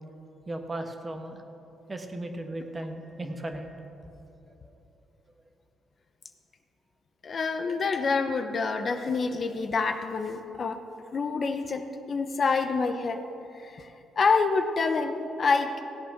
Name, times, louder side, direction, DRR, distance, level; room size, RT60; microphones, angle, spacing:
voice 1, 0.5-1.4 1.9-3.9 4.6-4.7, right 1 dB, 25° right, 5 dB, 1.3 m, -36 dB
voice 2, 7.2-10.8 11.1-13.2 13.5-13.9 14.2-15.8, left 4 dB, 45° left, 7 dB, 0.8 m, -27 dB
16.0 x 8.4 x 5.9 m, 2.9 s
cardioid pair, 90°, 0 cm